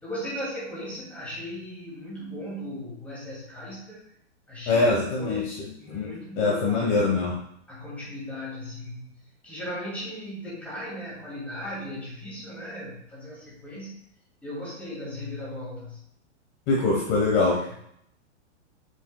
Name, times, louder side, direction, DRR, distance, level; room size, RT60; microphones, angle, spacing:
voice 1, 0.0-4.0 4.5-4.9 5.2-7.1 7.7-14.0 14.4-16.0 17.7-17.8, left 1 dB, 5° left, -7 dB, 2.5 m, -37 dB
voice 2, 4.7-5.4 5.9-6.1 6.4-7.3 16.7-17.6, left 3 dB, 30° left, -3 dB, 1.2 m, -23 dB
7.3 x 7.2 x 2.3 m, 0.70 s
hypercardioid pair, 165°, 36 cm